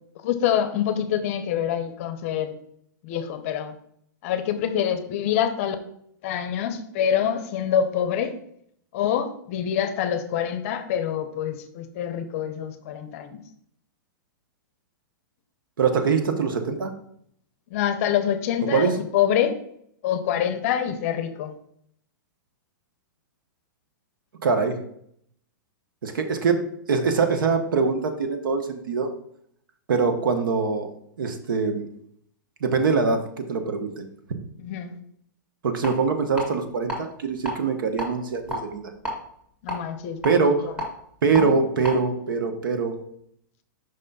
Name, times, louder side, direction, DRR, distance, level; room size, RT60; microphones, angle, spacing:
voice 1, 0.2-2.6 3.0-3.7 4.2-5.8 6.2-8.4 8.9-13.4 17.7-19.6 20.0-21.5 34.6-34.9 39.6-40.2 40.6-40.7 41.3-41.5, left 9 dB, 40° left, 9 dB, 0.6 m, -26 dB
voice 2, 15.8-16.9 18.7-19.0 24.4-24.8 26.0-29.1 29.9-30.9 31.2-31.9 32.6-34.1 35.6-38.9 40.2-40.7 41.2-43.0, right 5 dB, 80° right, 7 dB, 1.0 m, -23 dB
sound 1, 35.8-35.9 36.4-37.0 37.3-37.5 38.0-39.1 39.7-41.4 41.8-41.9, equal, 10° right, 1.7 m, -31 dB
5.4 x 3.3 x 5.4 m, 0.68 s
hypercardioid pair, 155°, 11 cm